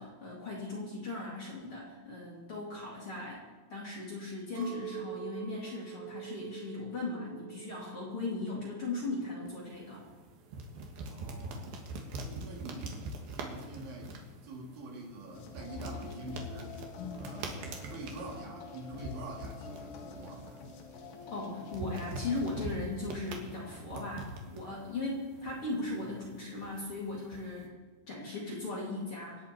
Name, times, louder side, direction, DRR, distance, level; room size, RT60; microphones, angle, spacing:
voice 1, 0.0-3.4 3.7-10.1 21.3-27.7 28.1-29.5, left 2 dB, 40° left, -4 dB, 2.4 m, -38 dB
Chink clink, 4.5-8.9 9.2-10.0, right 11 dB, 45° right, 3.3 m, -45 dB
sound 1, 9.5-27.7, right 2 dB, 65° right, 3.0 m, -44 dB
voice 2, 11.0-11.8 12.1-14.2 14.4-16.7 17.2-17.6 17.8-20.5 25.3-25.4, right 2 dB, 85° right, -2 dB, 5.2 m, -45 dB
sound 2, 15.3-22.7, left 5 dB, 70° left, 3.1 m, -46 dB
25.0 x 9.4 x 4.4 m, 1.3 s
omnidirectional pair, 5.2 m